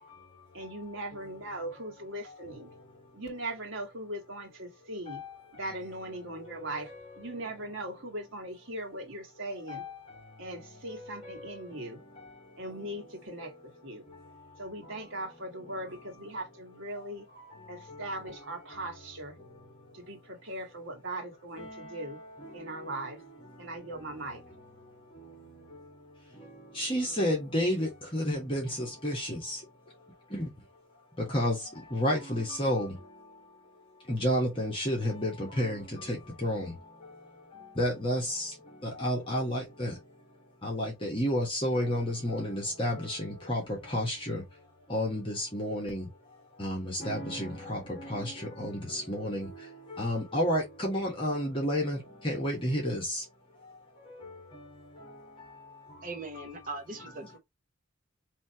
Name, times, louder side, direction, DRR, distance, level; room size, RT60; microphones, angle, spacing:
voice 1, 0.5-2.7 3.1-5.2 5.5-6.9 7.2-9.8 10.4-12.0 12.6-14.0 14.6-17.3 17.7-19.3 19.9-22.2 22.5-23.2 23.6-24.4, right 1 dB, 75° right, 1.5 m, -39 dB
voice 2, 26.8-29.6 30.3-30.5 31.3-31.6 31.9-32.9 34.1-36.7 37.8-38.5 38.8-39.9 40.6-44.4 44.9-46.1 46.6-49.5 49.9-52.0 52.2-53.2, equal, 25° left, 1.3 m, -30 dB
voice 3, 56.0-57.4, right 2 dB, 45° right, 0.9 m, -40 dB
4.2 x 2.9 x 2.8 m
head